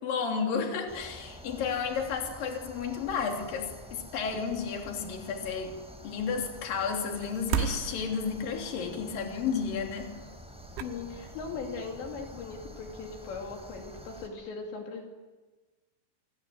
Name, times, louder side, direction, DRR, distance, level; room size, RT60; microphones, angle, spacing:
voice 1, 0.0-5.8 6.0-10.1, left 6 dB, 50° left, 3 dB, 4.6 m, -32 dB
sound 1, 0.9-14.3, equal, ahead, 3.6 m, -48 dB
sound 2, 7.1-8.7 10.3-10.4 10.6-11.6 12.0-12.2, right 9 dB, 85° right, 3.8 m, -34 dB
voice 2, 10.8-15.0, left 4 dB, 70° left, 2 dB, 4.6 m, -39 dB
27.5 x 21.0 x 9.3 m, 1.2 s
omnidirectional pair, 5.4 m